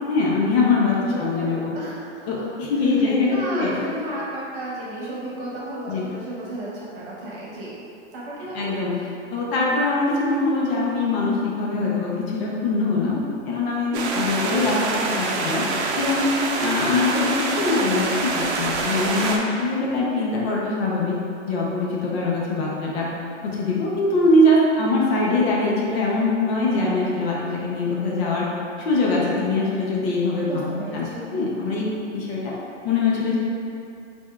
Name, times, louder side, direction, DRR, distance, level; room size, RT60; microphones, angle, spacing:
voice 1, 0.1-1.7 2.3-4.0 5.9-6.0 8.5-9.0 9.3-13.2 13.4-15.6 16.0-16.3 16.6-21.2 21.5-23.1 23.4-28.5 28.8-30.6 30.9-32.5 32.8-33.4, left 2 dB, 55° left, -4 dB, 0.8 m, -22 dB
voice 2, 1.1-2.5 3.2-7.7 8.1-8.7 14.7-15.1 30.5-31.3, right 1 dB, 45° right, -7 dB, 1.1 m, -34 dB
sound 1, 13.9-19.4, right 3 dB, 65° right, 0.6 m, -25 dB
4.2 x 2.6 x 2.4 m, 2.6 s
hypercardioid pair, 135°, 37 cm